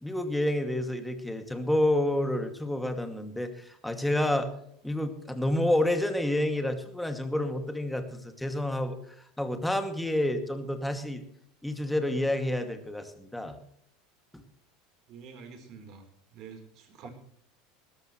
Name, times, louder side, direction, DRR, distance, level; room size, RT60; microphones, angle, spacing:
voice 1, 0.0-4.5 4.8-11.2 11.6-13.6 14.3-14.4, left 1 dB, 5° left, 7 dB, 2.4 m, -29 dB
voice 2, 15.1-17.1, right 6 dB, 50° right, 6 dB, 4.1 m, -48 dB
20.0 x 13.5 x 3.3 m, 0.66 s
figure-of-eight pair, 75°, 0 cm